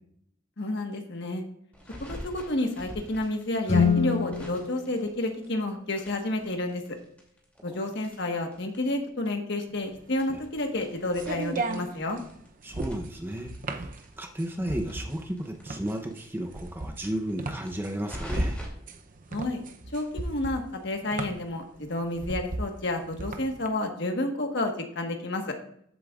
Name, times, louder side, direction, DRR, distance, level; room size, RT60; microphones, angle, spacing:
voice 1, 0.6-1.4 2.0-6.8 7.6-12.2 19.3-19.6 19.9-25.5, left 2 dB, 60° left, 4 dB, 1.4 m, -30 dB
sound 1, 1.7-5.6 5.9-9.0 9.2-9.3 9.6-9.7 10.1-12.5 12.8-15.8 16.1-16.2 16.4-16.5 16.9-18.7, equal, 5° left, 2.7 m, -42 dB
Guitar, 3.6-6.2, left 5 dB, 35° left, 1.9 m, -28 dB
sound 2, 9.8-23.7, right 2 dB, 45° right, 0.7 m, -36 dB
voice 2, 12.6-13.9 14.2-18.6, right 1 dB, 10° right, 3 dB, 0.8 m, -33 dB
13.5 x 8.4 x 2.5 m, 0.68 s
head